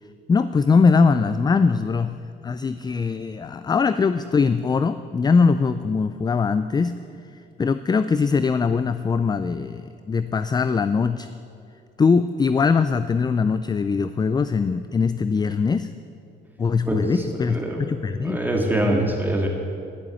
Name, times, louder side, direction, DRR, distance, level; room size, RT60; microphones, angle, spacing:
voice 1, 0.3-6.9 7.6-11.3 12.0-15.9 16.6-18.4, left 5 dB, 20° left, 12 dB, 0.3 m, -21 dB
voice 2, 16.9-17.9 18.2-19.5, right 1 dB, 10° right, 1 dB, 2.0 m, -24 dB
11.0 x 7.0 x 8.3 m, 2.4 s
cardioid pair, 90°, 20 cm